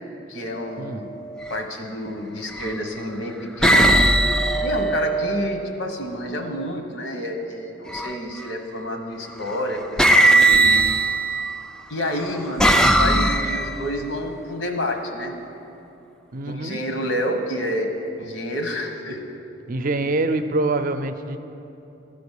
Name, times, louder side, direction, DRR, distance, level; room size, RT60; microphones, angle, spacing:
voice 1, 0.3-1.1 1.5-4.0 4.6-10.5 11.9-15.3 16.4-17.9 18.2-19.4, left 1 dB, 80° left, 4 dB, 1.2 m, -29 dB
sound 1, 1.3-1.6 2.5-3.0 3.6-5.7 7.9-8.4 9.5-9.6 10.0-11.6 12.2-13.9, right 2 dB, 5° left, 0.3 m, -18 dB
voice 2, 16.3-16.9 19.7-21.4, right 2 dB, 45° right, 9 dB, 0.5 m, -25 dB
12.0 x 5.1 x 8.3 m, 2.9 s
head